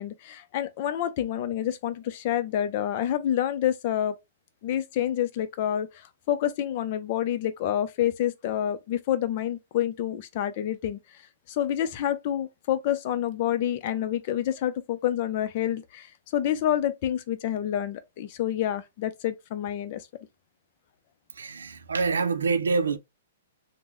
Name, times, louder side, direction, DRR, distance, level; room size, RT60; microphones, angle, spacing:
voice 1, 0.0-4.2 4.6-11.0 11.5-20.0, left 11 dB, 45° left, 0.5 m, -28 dB
voice 2, 21.3-23.0, right 4 dB, 90° right, 0.5 m, -26 dB
3.6 x 2.2 x 3.0 m
hypercardioid pair, 135°, 0 cm